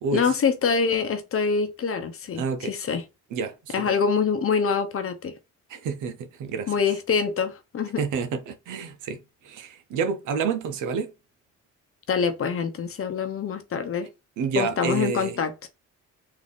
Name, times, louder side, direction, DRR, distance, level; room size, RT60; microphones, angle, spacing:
voice 1, 0.1-3.0 3.7-5.3 6.7-8.0 12.1-14.1 14.6-15.7, left 6 dB, 45° left, 0.8 m, -25 dB
voice 2, 2.4-2.7 3.3-3.9 5.7-6.7 8.0-11.1 14.4-15.4, right 5 dB, 80° right, 0.8 m, -29 dB
3.9 x 2.8 x 3.4 m
cardioid pair, 90°, 30 cm